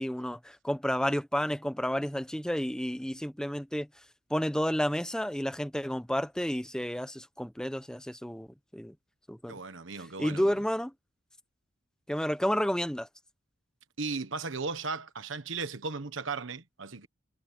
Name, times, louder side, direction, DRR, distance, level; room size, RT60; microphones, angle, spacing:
voice 1, 0.0-3.9 4.3-8.5 8.7-8.9 9.3-9.5 10.2-10.9 12.1-13.1, equal, 5° left, 0.8 m, -31 dB
voice 2, 9.5-10.5 14.0-17.1, right 4 dB, 85° right, 1.3 m, -36 dB
head